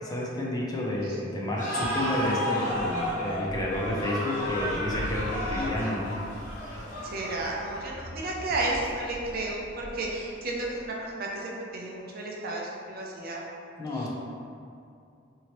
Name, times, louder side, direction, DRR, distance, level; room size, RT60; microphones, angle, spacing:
voice 1, 0.0-6.2 13.8-14.1, left 1 dB, 20° left, -4 dB, 0.4 m, -30 dB
sound 1, 1.6-8.0, equal, 45° left, 0.8 m, -32 dB
sound 2, 2.7-11.1, equal, 80° left, 0.7 m, -42 dB
voice 2, 7.0-13.4, right 2 dB, 50° right, -3 dB, 0.5 m, -32 dB
2.8 x 2.8 x 2.9 m, 2.4 s
head